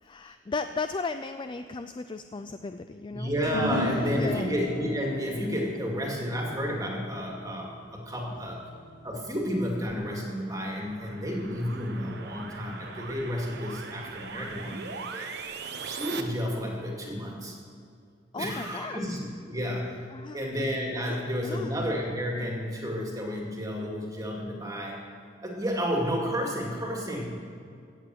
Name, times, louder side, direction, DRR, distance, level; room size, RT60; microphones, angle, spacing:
voice 1, 0.0-3.3 3.9-4.5 18.3-19.0 20.1-20.5 21.1-21.7, left 4 dB, 25° left, 10 dB, 0.4 m, -36 dB
voice 2, 3.1-8.6 9.0-15.4 15.8-17.6 18.4-20.0 20.3-25.0 25.4-27.4, equal, 20° right, -1 dB, 2.3 m, -31 dB
sound 1, 3.4-10.0, left 1 dB, 75° left, 4.5 m, -36 dB
sound 2, 9.7-16.2, right 5 dB, 60° right, 1.0 m, -41 dB
17.0 x 7.7 x 7.6 m, 2.3 s
head